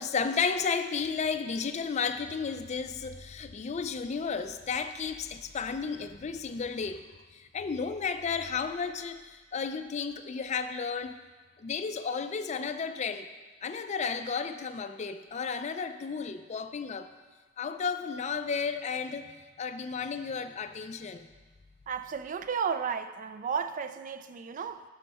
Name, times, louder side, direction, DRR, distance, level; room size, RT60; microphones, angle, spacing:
voice 1, 0.0-7.0 7.3-11.2 11.6-13.3 13.6-17.1 17.6-21.3, left 5 dB, 35° left, 0.4 m, -33 dB
voice 2, 21.9-24.8, right 6 dB, 40° right, 0.3 m, -33 dB
9.0 x 6.4 x 4.1 m
head